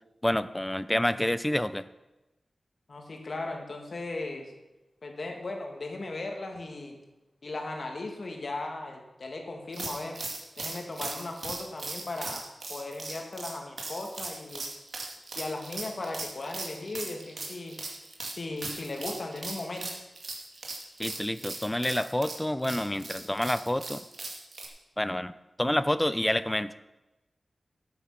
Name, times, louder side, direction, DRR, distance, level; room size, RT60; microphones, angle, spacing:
voice 1, 0.2-1.8 21.0-24.0 25.0-25.3 25.6-26.7, left 1 dB, 10° left, 14 dB, 0.6 m, -28 dB
voice 2, 2.9-4.5 5.0-7.0 7.4-10.2 10.6-14.7 15.3-17.8 18.3-19.9, left 2 dB, 60° left, 2 dB, 2.2 m, -37 dB
sound 1, 9.7-24.7, right 3 dB, 65° right, 2.4 m, -39 dB
13.0 x 8.9 x 5.9 m, 1.0 s
wide cardioid pair, 90°, 0 cm